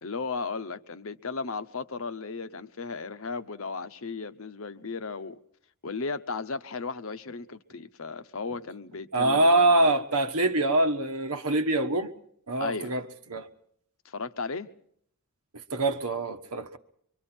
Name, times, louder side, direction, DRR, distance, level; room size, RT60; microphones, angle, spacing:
voice 1, 0.0-5.4 5.8-9.7 12.6-12.9 14.0-14.7, left 4 dB, 65° left, 0.8 m, -35 dB
voice 2, 9.1-12.1 12.5-13.5 15.5-16.8, right 2 dB, 85° right, 1.4 m, -24 dB
25.0 x 24.0 x 4.4 m
head